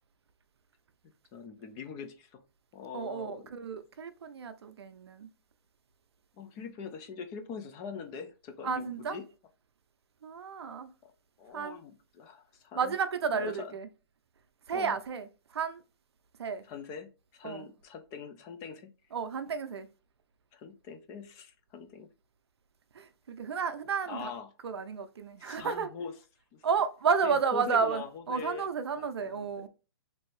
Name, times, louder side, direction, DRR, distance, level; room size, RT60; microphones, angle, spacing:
voice 1, 1.3-2.4 2.7-3.5 6.4-9.2 11.0-11.1 11.4-12.9 13.3-13.7 14.7-14.9 16.6-18.9 20.5-22.1 24.1-24.5 25.4-26.1 26.5-26.7 27.2-28.7 29.0-29.7, left 6 dB, 25° left, 0.4 m, -43 dB
voice 2, 2.9-5.3 8.6-9.2 10.2-10.9 11.5-11.8 12.8-13.9 14.7-15.8 16.4-16.6 17.4-17.7 19.1-19.9 22.9-24.3 24.6-25.9 26.6-29.7, right 6 dB, 80° right, 0.5 m, -32 dB
3.1 x 2.6 x 3.0 m
hypercardioid pair, 145°, 13 cm